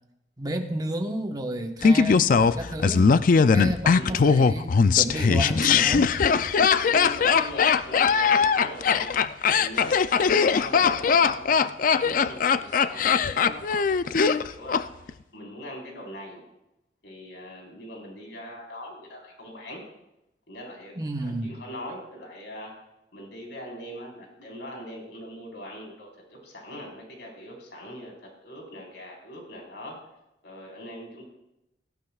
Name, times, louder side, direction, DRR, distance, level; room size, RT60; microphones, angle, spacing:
voice 1, 0.4-3.1 3.5-6.1 20.9-21.5, right 1 dB, 20° right, 3 dB, 1.1 m, -32 dB
Laughter, 1.8-14.8 15.1-15.2, left 5 dB, 50° left, 0.4 m, -20 dB
voice 2, 3.8-4.3 6.7-16.4 17.0-19.8 20.5-22.7 23.1-30.0 30.4-31.2, equal, 85° left, -2 dB, 4.2 m, -41 dB
17.5 x 15.0 x 2.4 m, 0.89 s
head